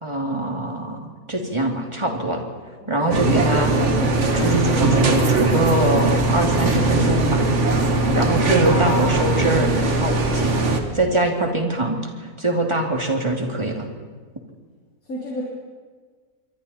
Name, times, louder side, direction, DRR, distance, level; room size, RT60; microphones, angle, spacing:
voice 1, 0.0-2.4 2.9-3.7 4.3-7.5 8.1-9.7 10.0-10.6 10.9-12.0 12.4-13.9, right 1 dB, 20° right, 1 dB, 2.7 m, -23 dB
sound 1, 3.1-10.8, right 2 dB, 50° right, 1.9 m, -19 dB
voice 2, 15.0-15.4, left 1 dB, 65° left, -4 dB, 3.8 m, -32 dB
26.5 x 23.5 x 4.3 m, 1.5 s
omnidirectional pair, 1.6 m